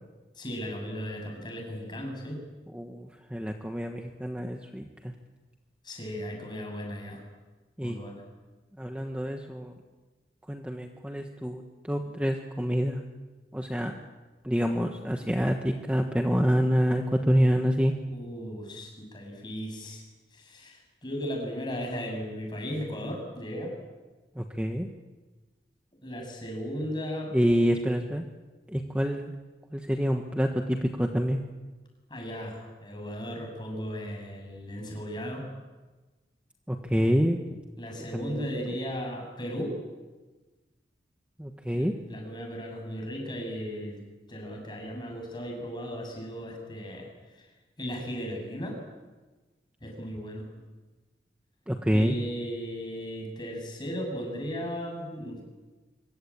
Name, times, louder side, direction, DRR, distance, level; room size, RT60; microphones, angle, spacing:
voice 1, 0.4-2.4 5.8-7.2 7.8-8.2 18.1-20.0 20.3-23.7 26.0-27.3 32.1-35.5 37.8-39.8 41.7-44.0 44.3-47.1 47.3-47.5 47.8-48.8 49.8-50.5 51.9-55.4, equal, 25° left, 1 dB, 7.9 m, -36 dB
voice 2, 2.7-5.1 7.8-8.0 8.8-9.7 10.5-13.0 13.5-14.0 14.4-17.9 24.3-24.9 27.3-28.3 28.7-29.3 29.7-31.4 36.7-37.4 38.1-38.5 41.4-41.9 51.7-52.2, equal, 5° right, 3 dB, 1.3 m, -27 dB
25.5 x 23.5 x 8.8 m, 1.2 s
head